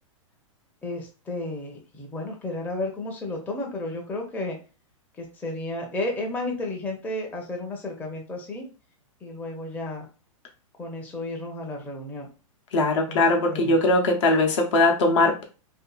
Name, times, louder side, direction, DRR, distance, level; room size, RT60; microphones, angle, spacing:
voice 1, 0.8-4.6 5.2-8.7 9.2-10.1 10.8-12.3 13.1-13.2 13.5-13.8, left 2 dB, 10° left, 0 dB, 0.5 m, -32 dB
voice 2, 12.7-15.4, left 2 dB, 60° left, 2 dB, 0.8 m, -20 dB
2.7 x 2.5 x 2.3 m, 0.33 s
hypercardioid pair, 130°, 17 cm